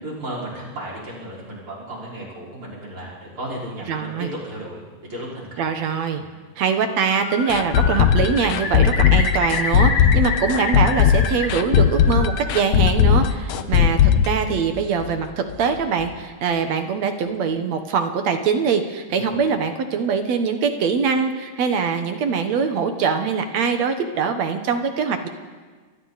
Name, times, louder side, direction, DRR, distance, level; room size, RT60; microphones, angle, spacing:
voice 1, 0.0-4.8 5.1-5.7 6.1-6.2 13.5-13.8 19.1-19.4, right 1 dB, 40° right, -6 dB, 6.2 m, -34 dB
voice 2, 3.9-4.3 5.6-6.2 6.6-25.3, right 6 dB, 60° right, 7 dB, 2.2 m, -23 dB
Bird, 6.9-7.5 7.7-11.5 11.8-12.6, left 4 dB, 45° left, 2.0 m, -28 dB
sound 1, 7.5-15.2 15.5-15.6 16.0-16.1, left 9 dB, 70° left, 1.8 m, -17 dB
28.5 x 22.5 x 4.2 m, 1.4 s
omnidirectional pair, 3.9 m